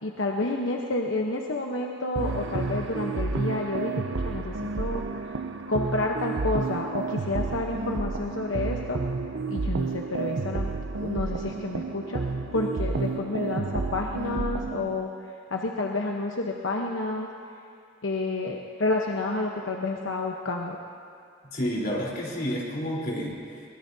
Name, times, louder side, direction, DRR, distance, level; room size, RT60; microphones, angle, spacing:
voice 1, 0.0-5.4 5.7-9.0 9.5-10.7 11.0-12.2 12.5-17.3 18.0-20.8, left 2 dB, 85° left, 0 dB, 1.0 m, -30 dB
sound 1, 2.2-15.0, right 3 dB, 85° right, 0.7 m, -30 dB
voice 2, 21.5-23.7, equal, 50° left, -4 dB, 3.9 m, -30 dB
23.5 x 20.5 x 2.8 m, 2.4 s
head